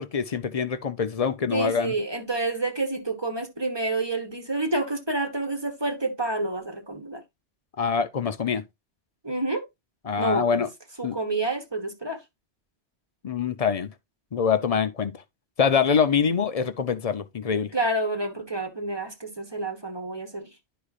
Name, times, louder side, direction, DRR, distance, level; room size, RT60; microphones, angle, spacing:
voice 1, 0.0-1.9 7.8-8.6 10.0-10.7 11.0-11.2 13.2-13.9 14.3-15.2 15.6-17.7, left 6 dB, 45° left, 0.5 m, -24 dB
voice 2, 1.5-7.2 9.2-9.6 10.2-10.6 11.0-12.2 17.7-20.5, right 2 dB, 25° right, 1.2 m, -28 dB
11.0 x 5.0 x 2.4 m
omnidirectional pair, 1.2 m